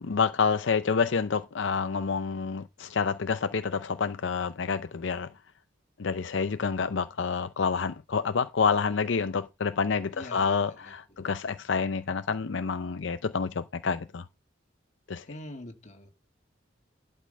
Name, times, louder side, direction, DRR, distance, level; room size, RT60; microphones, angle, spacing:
voice 1, 0.0-5.3 6.0-14.2 15.1-15.3, left 5 dB, 65° left, 0.5 m, -28 dB
voice 2, 10.1-11.3 15.3-16.1, left 1 dB, 40° left, 2.1 m, -45 dB
12.0 x 5.2 x 5.4 m
head